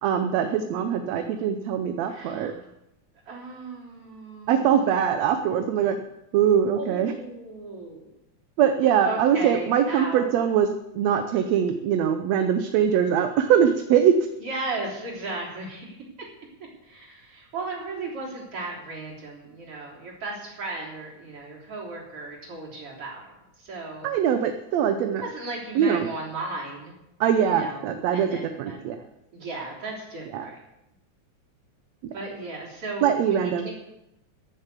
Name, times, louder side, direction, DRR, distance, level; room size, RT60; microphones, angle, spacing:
voice 1, 0.0-2.5 4.5-6.0 6.3-7.1 8.6-10.7 11.0-14.1 24.0-25.2 25.8-26.1 27.2-28.3 28.6-29.0 30.3-30.5 33.0-33.7, right 8 dB, 70° right, 7 dB, 1.9 m, -22 dB
voice 2, 2.1-2.6 3.3-6.0 6.7-8.1 9.0-10.2 14.4-16.3 16.8-24.1 25.2-27.0 27.4-27.9 28.1-28.9 29.3-30.6 32.1-33.7, right 2 dB, 50° right, -3 dB, 4.5 m, -36 dB
14.5 x 7.1 x 8.3 m, 0.89 s
omnidirectional pair, 3.4 m